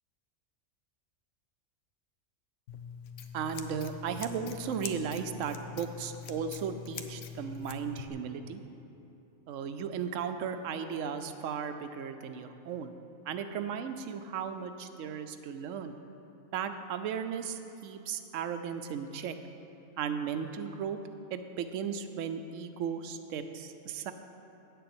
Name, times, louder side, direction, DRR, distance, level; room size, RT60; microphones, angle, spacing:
Scissors, 2.7-8.1, left 8 dB, 70° left, 1.0 m, -44 dB
voice 1, 3.3-8.6 9.5-13.0 13.3-16.0 16.5-19.4 20.0-21.0 21.3-24.1, right 7 dB, 75° right, 9 dB, 1.0 m, -36 dB
9.0 x 6.8 x 7.8 m, 2.8 s
omnidirectional pair, 1.4 m